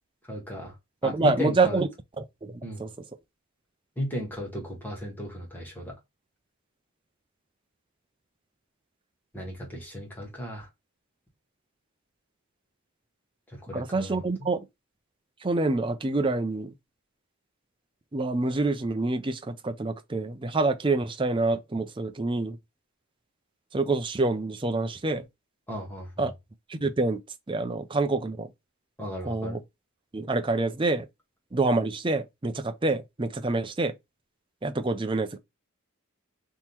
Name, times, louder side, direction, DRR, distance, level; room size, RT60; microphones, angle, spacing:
voice 1, 0.3-0.7 1.0-1.8 2.6-2.8 4.0-5.9 9.3-10.7 13.5-14.5 25.7-26.3 29.0-29.6, left 1 dB, 10° left, 1.7 m, -35 dB
voice 2, 1.0-1.9 2.2-2.9 13.7-14.7 15.4-16.7 18.1-22.6 23.7-25.3 26.2-26.3 26.7-27.2 27.5-28.5 29.3-29.6 30.1-31.1 31.5-33.9 34.6-35.4, right 3 dB, 20° right, 0.5 m, -27 dB
3.7 x 3.0 x 4.3 m
head